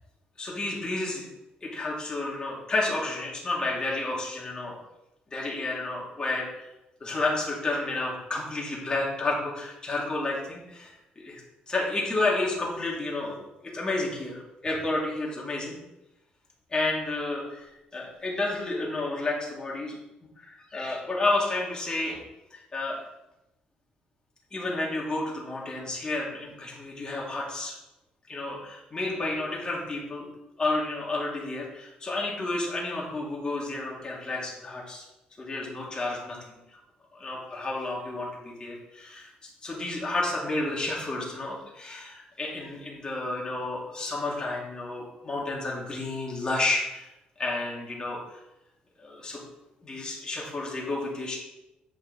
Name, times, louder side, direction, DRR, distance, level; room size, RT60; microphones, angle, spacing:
voice 1, 0.4-1.2 1.6-4.8 5.3-6.5 7.0-11.4 11.7-15.8 16.7-17.6 17.9-20.0 20.4-22.2 22.5-23.0 24.5-27.8 28.3-30.3 30.6-35.0 35.4-36.6 37.1-39.3 39.6-47.1 47.4-48.2 49.0-49.4 49.8-51.4, left 2 dB, 25° left, -4 dB, 2.6 m, -31 dB
8.7 x 5.1 x 4.1 m, 0.92 s
cardioid pair, 105°, 3 cm